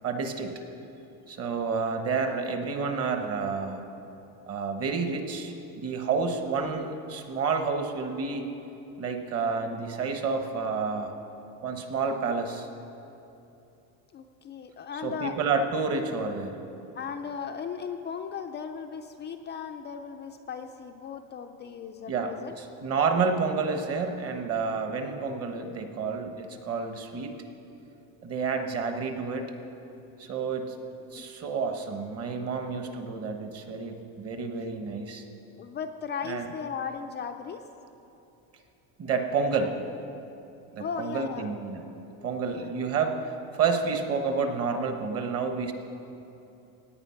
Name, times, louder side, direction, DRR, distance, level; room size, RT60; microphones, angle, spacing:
voice 1, 0.0-0.5 1.3-3.8 4.5-8.5 9.0-11.1 11.6-12.7 15.0-16.6 22.1-27.3 28.2-29.5 30.2-30.7 31.1-35.2 36.2-36.4 39.0-39.8 40.7-41.8 42.2-45.7, right 5 dB, 35° right, 6 dB, 1.2 m, -29 dB
voice 2, 14.1-15.3 16.9-22.6 31.1-31.3 35.6-37.6 40.8-41.5 42.5-42.8, left 6 dB, 25° left, 6 dB, 0.4 m, -37 dB
17.0 x 9.4 x 5.7 m, 2.9 s
cardioid pair, 155°, 42 cm